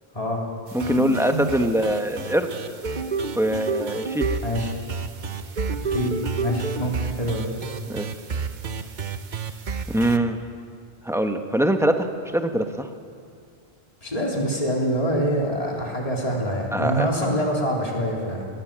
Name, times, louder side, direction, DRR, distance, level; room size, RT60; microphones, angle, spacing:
voice 1, 0.7-2.5 3.4-4.3 7.9-8.1 9.9-10.4 11.0-12.9 16.7-17.1, right 1 dB, 5° right, 5 dB, 1.1 m, -23 dB
sound 1, 0.7-10.2, right 4 dB, 50° right, 1.0 m, -30 dB
voice 2, 4.4-4.7 5.8-7.5 14.0-18.5, equal, 35° left, -2 dB, 3.7 m, -25 dB
21.0 x 19.0 x 7.5 m, 2.2 s
omnidirectional pair, 1.0 m